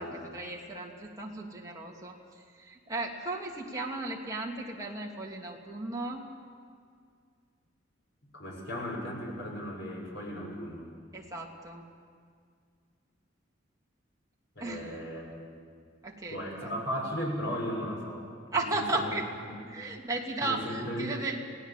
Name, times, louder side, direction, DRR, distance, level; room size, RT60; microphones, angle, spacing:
voice 1, 0.3-2.2 2.6-6.3 11.1-11.9 14.6-15.0 16.0-16.7 18.5-19.2 19.7-21.4, right 2 dB, 20° right, -2 dB, 2.8 m, -35 dB
voice 2, 8.3-10.9 14.5-15.5 16.3-18.2 18.5-19.2 19.5-19.6 20.4-21.1, equal, 65° left, -1 dB, 6.4 m, -36 dB
28.0 x 17.5 x 7.5 m, 2.1 s
head